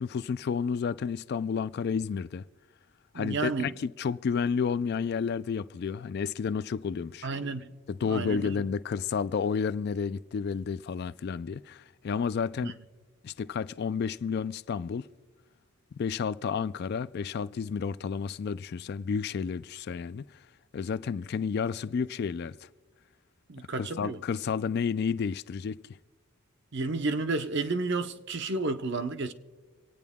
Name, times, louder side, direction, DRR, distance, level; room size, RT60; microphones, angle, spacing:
voice 1, 0.0-2.4 3.1-7.3 7.9-12.8 13.2-15.1 16.0-20.2 20.7-22.6 23.7-25.8, left 6 dB, 50° left, 0.3 m, -31 dB
voice 2, 3.1-3.7 7.2-7.7 8.1-8.6 12.6-12.7 23.5-24.2 26.7-29.3, right 3 dB, 55° right, 0.7 m, -31 dB
26.5 x 9.2 x 3.6 m
head